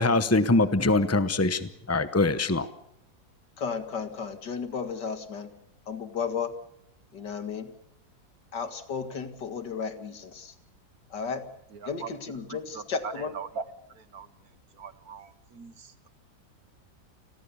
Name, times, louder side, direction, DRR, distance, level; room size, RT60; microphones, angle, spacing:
voice 1, 0.0-2.7, left 2 dB, 25° left, 12 dB, 0.3 m, -23 dB
voice 2, 3.6-5.5 5.9-6.6 7.1-7.7 8.5-10.5 11.1-11.5 11.9-13.3, left 6 dB, 60° left, 9 dB, 2.5 m, -34 dB
voice 3, 11.7-13.7 14.0-14.3 14.8-16.1, right 5 dB, 55° right, 13 dB, 1.5 m, -41 dB
29.5 x 20.5 x 7.1 m, 0.79 s
omnidirectional pair, 2.1 m